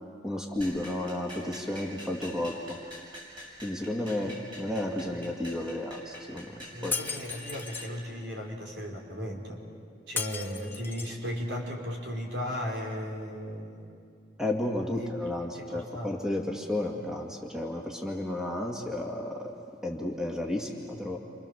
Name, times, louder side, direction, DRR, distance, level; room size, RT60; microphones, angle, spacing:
voice 1, 0.2-2.6 3.6-6.5 6.8-6.9 14.4-19.5 19.8-21.2, left 1 dB, 5° right, 0 dB, 2.0 m, -32 dB
sound 1, 0.6-8.0, equal, 25° right, 6.0 m, -46 dB
voice 2, 6.5-9.6 10.1-14.0 14.9-15.1 15.5-16.1, equal, 80° right, 0 dB, 4.6 m, -36 dB
Shatter, 6.9-7.9 10.2-11.2, left 5 dB, 10° left, 1.2 m, -35 dB
29.0 x 26.5 x 7.1 m, 2.3 s
head